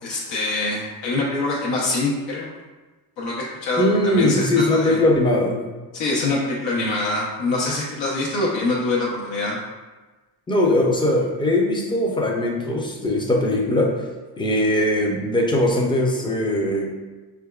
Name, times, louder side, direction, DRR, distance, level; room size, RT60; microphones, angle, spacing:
voice 1, 0.0-2.5 3.2-5.0 5.9-9.6, left 2 dB, 90° left, -5 dB, 0.9 m, -24 dB
voice 2, 3.8-5.6 10.5-13.9 14.4-16.9, left 1 dB, 10° left, -1 dB, 0.4 m, -20 dB
4.9 x 3.4 x 2.3 m, 1.2 s
cardioid pair, 170°, 43 cm